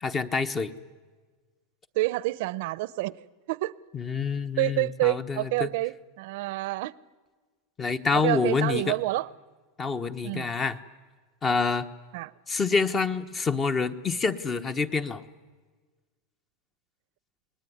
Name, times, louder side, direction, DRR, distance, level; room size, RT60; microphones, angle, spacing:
voice 1, 0.0-0.7 3.9-5.7 7.8-9.0 9.8-10.8 11.4-11.9 12.5-15.2, left 4 dB, 20° left, 1.1 m, -27 dB
voice 2, 2.0-3.7 4.6-6.9 8.1-9.3 10.2-10.5 12.1-12.3, right 19 dB, 60° right, 0.8 m, -28 dB
29.0 x 20.5 x 9.5 m
supercardioid pair, 155°, 0 cm